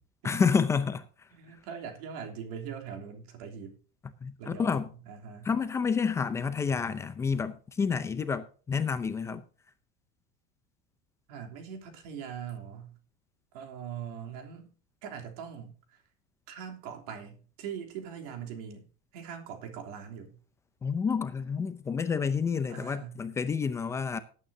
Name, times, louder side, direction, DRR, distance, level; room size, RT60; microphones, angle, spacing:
voice 1, 0.2-1.1 4.2-4.9 5.4-9.4 20.8-24.2, left 6 dB, 15° left, 0.6 m, -29 dB
voice 2, 1.3-3.8 4.4-5.5 11.3-12.9 13.5-14.7 15.0-16.0 16.5-18.9 19.1-20.4 22.7-23.2, right 7 dB, 75° right, 3.2 m, -42 dB
18.5 x 9.0 x 2.7 m
cardioid pair, 180°, 19 cm